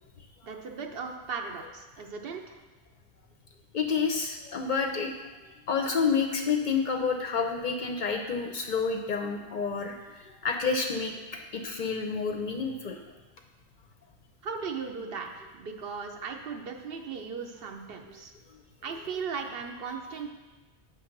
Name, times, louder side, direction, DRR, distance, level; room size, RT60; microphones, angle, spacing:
voice 1, 0.4-2.6 14.4-18.3 18.8-20.3, right 5 dB, 65° right, 3 dB, 0.8 m, -37 dB
voice 2, 3.7-5.1 5.7-13.0 18.1-18.2, left 5 dB, 55° left, 3 dB, 0.6 m, -29 dB
7.5 x 3.1 x 5.8 m, 1.2 s
omnidirectional pair, 1.1 m